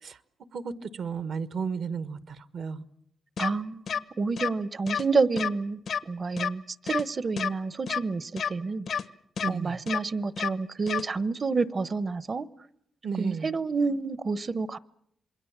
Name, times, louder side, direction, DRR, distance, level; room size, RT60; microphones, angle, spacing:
voice 1, 0.5-2.8 9.4-9.8 13.0-13.5, right 5 dB, 75° right, 1.4 m, -33 dB
sound 1, 3.4-3.5 3.9-4.0 4.4-4.5 4.9-5.0 5.4-5.5 5.9-6.0 6.4-6.5 6.9-7.0 7.4-7.5 7.9-8.0 8.4-8.5 8.9-9.0 9.4-9.5 9.9-10.0 10.4-10.5 10.9-11.0, left 7 dB, 70° left, 1.0 m, -29 dB
voice 2, 3.4-8.9 9.5-12.5 13.2-14.8, right 4 dB, 45° right, 0.9 m, -29 dB
27.5 x 22.0 x 7.4 m
cardioid pair, 90°, 0 cm